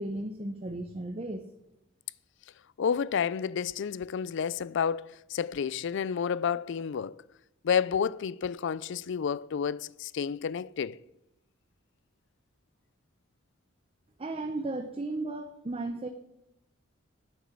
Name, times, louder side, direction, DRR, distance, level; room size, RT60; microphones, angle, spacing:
voice 1, 0.0-1.4 14.2-16.1, right 2 dB, 30° right, 0.7 m, -35 dB
voice 2, 2.8-7.2 7.6-11.0, left 7 dB, 60° left, 0.4 m, -30 dB
9.4 x 7.8 x 7.2 m
head